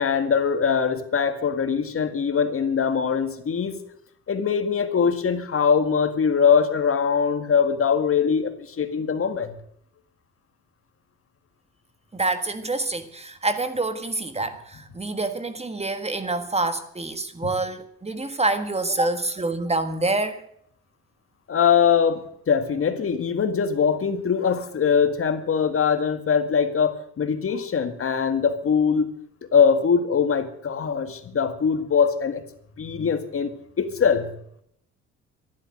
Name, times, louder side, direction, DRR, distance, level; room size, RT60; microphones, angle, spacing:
voice 1, 0.0-3.8 4.3-9.6 17.4-17.5 21.5-29.1 29.5-32.4 32.8-33.5 33.8-34.3, left 6 dB, 45° left, 1.9 m, -22 dB
voice 2, 12.1-20.4, right 2 dB, 20° right, 1.7 m, -27 dB
13.0 x 11.5 x 7.7 m
cardioid pair, 90°, 30 cm